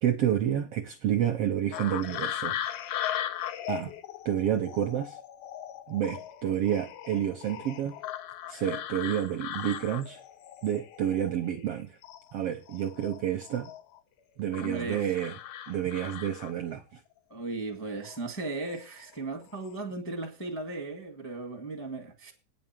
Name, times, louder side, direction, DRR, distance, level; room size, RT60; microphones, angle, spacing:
voice 1, 0.0-2.6 3.7-3.9 4.2-5.2 5.9-8.0 8.5-10.2 10.6-12.0 12.3-13.7 14.4-15.3 15.7-17.0, right 10 dB, 70° right, 1.5 m, -29 dB
sound 1, 1.7-11.7 12.0-14.0 14.5-16.8 18.0-18.2 18.7-19.1 19.4-19.7, left 11 dB, 80° left, 2.4 m, -38 dB
voice 2, 14.6-15.1 17.3-22.3, right 3 dB, 5° left, 1.0 m, -36 dB
9.3 x 6.3 x 7.4 m
omnidirectional pair, 3.7 m